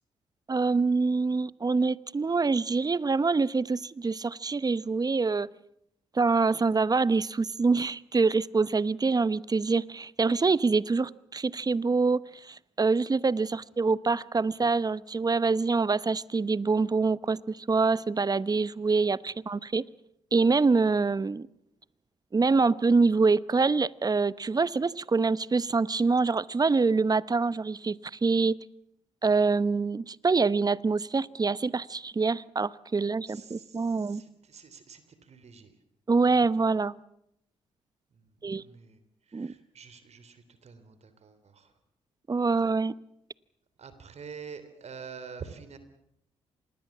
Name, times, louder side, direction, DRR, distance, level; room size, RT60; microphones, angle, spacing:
voice 1, 0.5-5.5 6.1-19.8 20.3-21.5 22.3-28.6 29.2-34.2 36.1-36.9 38.4-38.6 39.3-39.5 42.3-42.9, right 4 dB, 30° right, 0.9 m, -25 dB
voice 2, 33.3-35.7 38.1-39.0 39.3-41.7 43.8-45.8, right 6 dB, 55° right, 3.3 m, -47 dB
26.0 x 20.0 x 7.4 m
hypercardioid pair, 45°, 13 cm